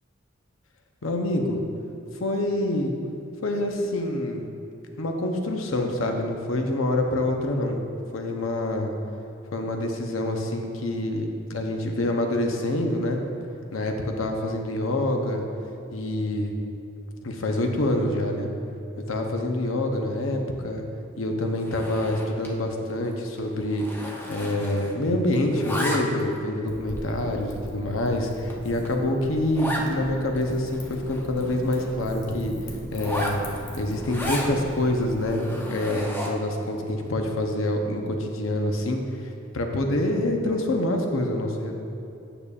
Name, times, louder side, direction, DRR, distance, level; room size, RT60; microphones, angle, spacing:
voice 1, 1.0-1.6 2.2-2.9 3.4-4.4 5.0-7.8 8.1-8.9 9.5-13.2 13.7-15.4 15.9-16.5 17.2-18.5 19.1-20.8 21.2-23.9 24.3-32.5 32.9-33.4 33.8-35.4 35.7-39.0 39.5-41.8, left 1 dB, 80° left, 3 dB, 0.7 m, -26 dB
Zipper (clothing), 21.6-22.6 22.9-23.1 23.4-25.1 25.3-26.4 27.0-27.1 27.7-27.8 28.2-28.3 28.5-28.6 28.8-29.0 29.5-29.9 30.4-30.5 30.7-32.0 32.9-34.5 35.1-36.5, equal, 10° left, 0.6 m, -33 dB
Wind / Fire, 26.7-35.2, equal, 40° left, 1.0 m, -40 dB
8.8 x 6.8 x 2.4 m, 2.8 s
head